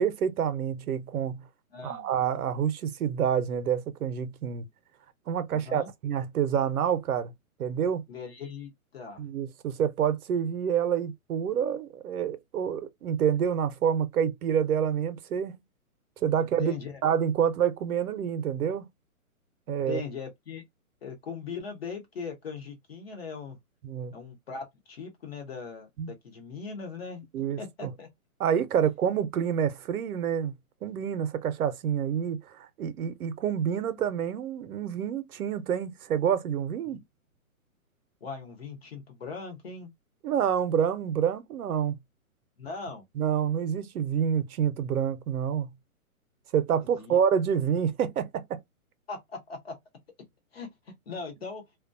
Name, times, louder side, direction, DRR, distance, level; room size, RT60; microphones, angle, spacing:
voice 1, 0.0-1.4 1.8-4.7 5.3-7.3 7.6-8.0 9.2-15.6 16.2-16.7 17.0-18.9 19.7-20.0 23.8-24.1 26.0-26.1 27.3-27.9 28.4-30.5 30.8-37.0 40.2-41.9 43.2-45.7 46.5-48.6, right 8 dB, 75° right, 0.6 m, -28 dB
voice 2, 1.7-2.1 5.5-5.9 8.1-9.2 16.6-17.0 19.9-20.6 21.0-23.6 24.1-27.3 27.6-28.1 36.8-37.0 38.2-39.9 42.6-43.0 47.0-47.2 49.1-49.7 50.5-50.7 51.1-51.6, left 5 dB, 45° left, 0.9 m, -39 dB
2.3 x 2.2 x 2.5 m
hypercardioid pair, 165°, 44 cm